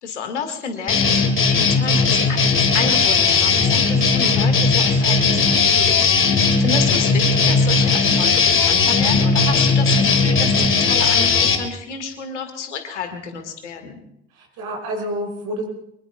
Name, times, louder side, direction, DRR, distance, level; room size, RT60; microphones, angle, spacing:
voice 1, 0.0-5.4 6.2-14.0, left 6 dB, 75° left, 6 dB, 2.0 m, -30 dB
sound 1, 0.9-11.6, left 4 dB, 35° left, 2.3 m, -17 dB
voice 2, 14.3-15.7, right 1 dB, 60° right, 1 dB, 5.3 m, -29 dB
24.5 x 22.5 x 2.3 m, 0.79 s
figure-of-eight pair, 50°, 35 cm